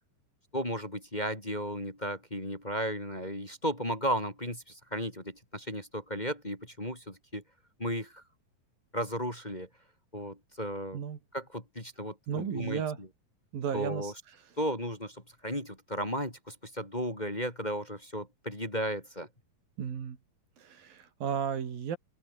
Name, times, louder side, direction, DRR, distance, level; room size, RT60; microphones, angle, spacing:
voice 1, 0.5-7.4 7.8-8.2 8.9-9.7 10.1-11.0 11.3-13.1 13.7-14.1 14.6-19.3, equal, 10° left, 3.4 m, -35 dB
voice 2, 12.3-13.0 13.5-14.1 19.8-20.2 20.6-22.0, right 7 dB, 85° right, 4.8 m, -34 dB
open air
omnidirectional pair, 4.0 m